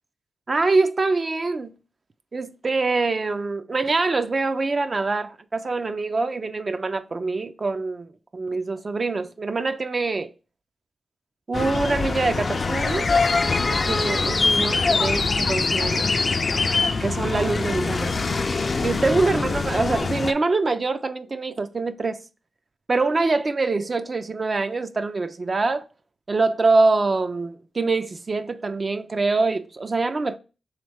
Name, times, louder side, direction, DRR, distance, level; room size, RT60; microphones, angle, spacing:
voice 1, 0.5-1.7 2.3-10.3 11.5-13.3 13.7-16.1 17.0-18.1 18.8-22.2 22.9-25.9 26.3-30.4, right 3 dB, 40° right, 0.4 m, -24 dB
sound 1, 11.5-20.3, left 4 dB, 45° left, 0.4 m, -23 dB
3.5 x 3.2 x 4.8 m
cardioid pair, 80°, 0 cm